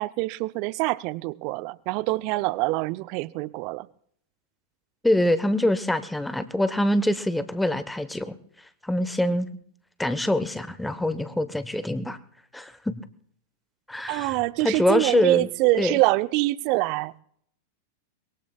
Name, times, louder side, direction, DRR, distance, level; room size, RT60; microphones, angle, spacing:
voice 1, 0.0-3.9 14.1-17.1, right 21 dB, 45° right, 0.6 m, -25 dB
voice 2, 5.0-8.4 8.8-9.5 10.0-12.2 12.5-13.0 13.9-15.5 15.8-16.0, left 1 dB, 5° left, 1.1 m, -24 dB
23.5 x 21.5 x 2.4 m
figure-of-eight pair, 95°, 0 cm